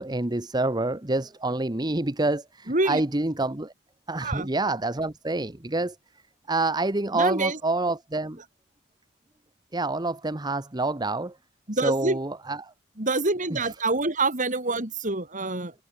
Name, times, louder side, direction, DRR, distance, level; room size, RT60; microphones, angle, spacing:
voice 1, 0.0-3.7 4.1-6.0 6.5-8.4 9.7-11.3 11.8-12.7, right 2 dB, 20° right, 1.1 m, -27 dB
voice 2, 2.7-3.0 4.2-4.5 7.1-7.6 11.7-12.2 13.0-15.7, right 2 dB, 40° right, 3.5 m, -26 dB
head